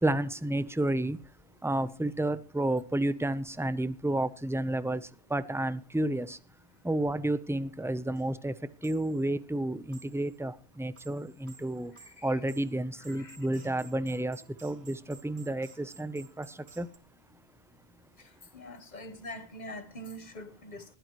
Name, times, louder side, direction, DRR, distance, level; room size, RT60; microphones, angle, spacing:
voice 1, 0.0-1.2 1.6-5.0 5.3-6.4 6.8-8.5 8.8-11.9 12.2-16.5 16.8-16.9, right 1 dB, 5° right, 0.6 m, -31 dB
sound 1, 7.8-7.9 8.2-8.3 8.8-9.3 9.9-10.4 10.7-17.0, right 6 dB, 80° right, 1.6 m, -55 dB
voice 2, 18.5-20.8, equal, 45° left, 1.3 m, -43 dB
20.0 x 14.0 x 3.1 m
omnidirectional pair, 1.1 m